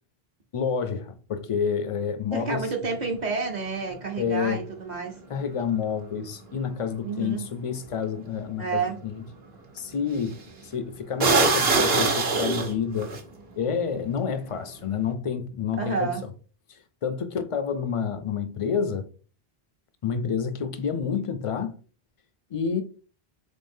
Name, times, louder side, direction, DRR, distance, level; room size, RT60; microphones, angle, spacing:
voice 1, 0.5-2.7 4.2-4.6 5.3-9.1 9.7-10.4 10.6-13.1 13.6-16.1 16.7-19.1 20.0-21.7 22.5-22.8, left 6 dB, 45° left, 0.4 m, -29 dB
voice 2, 2.3-5.2 7.0-7.5 8.6-9.0 15.8-16.2, right 4 dB, 45° right, 0.9 m, -29 dB
sound 1, 7.9-8.0 10.2-10.4 11.2-13.2, right 3 dB, 75° right, 1.1 m, -22 dB
3.8 x 3.5 x 2.6 m
omnidirectional pair, 1.0 m